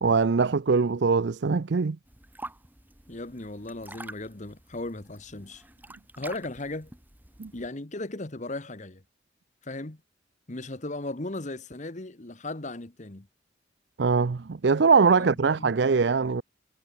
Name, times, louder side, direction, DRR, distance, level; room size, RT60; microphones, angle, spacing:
voice 1, 0.0-2.0 7.4-7.5 14.0-16.4, right 5 dB, 65° right, 0.5 m, -22 dB
sound 1, 2.1-7.7, right 2 dB, 10° right, 2.0 m, -47 dB
voice 2, 3.1-5.6 6.2-6.9 7.5-9.0 9.6-10.0 10.5-13.3 15.2-15.8, left 2 dB, 40° left, 1.3 m, -37 dB
head